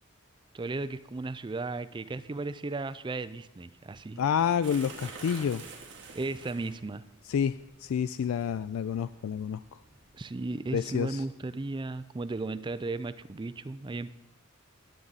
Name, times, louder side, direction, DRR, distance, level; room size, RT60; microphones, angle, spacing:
voice 1, 0.5-4.2 6.1-7.0 10.1-14.1, right 3 dB, 20° right, 13 dB, 0.4 m, -35 dB
voice 2, 4.2-5.6 7.3-7.5 7.8-9.6 10.7-11.2, left 7 dB, 70° left, 14 dB, 0.3 m, -28 dB
sound 1, 4.6-10.2, right 4 dB, 60° right, 2.3 m, -49 dB
19.5 x 7.5 x 4.0 m, 0.90 s
head